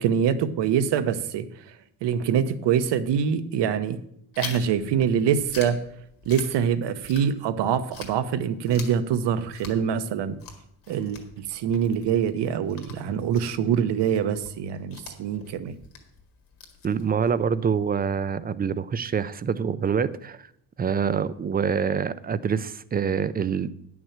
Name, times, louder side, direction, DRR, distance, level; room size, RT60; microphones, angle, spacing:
voice 1, 0.0-4.0 4.4-5.8 6.2-10.4 10.9-15.8, right 8 dB, 85° right, 11 dB, 1.0 m, -25 dB
Chewing mastication, 4.3-7.6 7.9-17.3, left 6 dB, 55° left, 2.0 m, -44 dB
voice 2, 16.8-20.4 20.8-23.7, right 6 dB, 25° right, 16 dB, 0.3 m, -25 dB
10.0 x 6.3 x 7.3 m, 0.72 s
cardioid pair, 160°, 41 cm